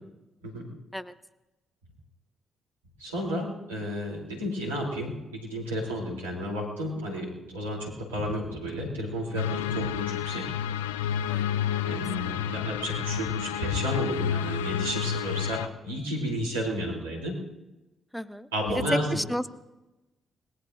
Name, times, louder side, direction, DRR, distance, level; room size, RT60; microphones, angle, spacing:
voice 1, 3.0-10.5 11.9-17.3 18.5-19.1, equal, 85° right, -4 dB, 3.6 m, -32 dB
sound 1, 9.4-15.7, left 9 dB, 80° left, 0.4 m, -30 dB
voice 2, 11.3-11.9 18.1-18.8 19.1-19.5, equal, ahead, 14 dB, 0.8 m, -34 dB
25.0 x 20.5 x 2.7 m, 1.0 s
figure-of-eight pair, 40°, 0 cm